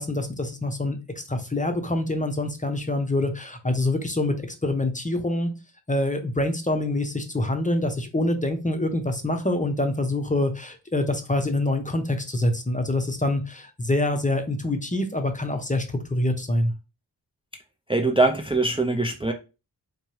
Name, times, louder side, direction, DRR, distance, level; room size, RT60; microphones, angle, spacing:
voice 1, 0.0-5.5 5.9-16.7, left 1 dB, 15° left, 6 dB, 0.8 m, -25 dB
voice 2, 17.9-19.3, right 2 dB, 10° right, 4 dB, 0.5 m, -22 dB
4.5 x 2.2 x 3.1 m, 0.30 s
cardioid pair, 45°, 44 cm